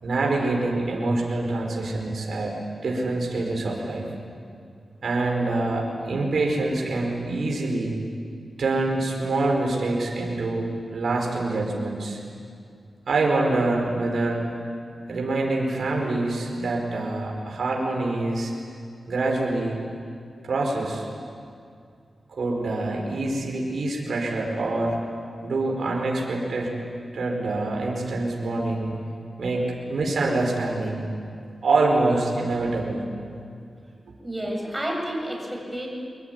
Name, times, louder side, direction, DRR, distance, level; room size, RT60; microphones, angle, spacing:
voice 1, 0.0-2.5 2.8-4.1 5.0-7.9 8.6-12.2 13.1-14.4 15.1-18.5 19.1-19.8 20.4-21.0 22.3-25.0 25.4-26.7 27.1-28.9 29.4-31.1 31.6-33.0, right 2 dB, 80° right, 0 dB, 5.1 m, -25 dB
voice 2, 34.2-35.9, right 1 dB, 15° right, 0 dB, 7.8 m, -30 dB
26.0 x 22.0 x 9.6 m, 2.3 s
cardioid pair, 70°, 0 cm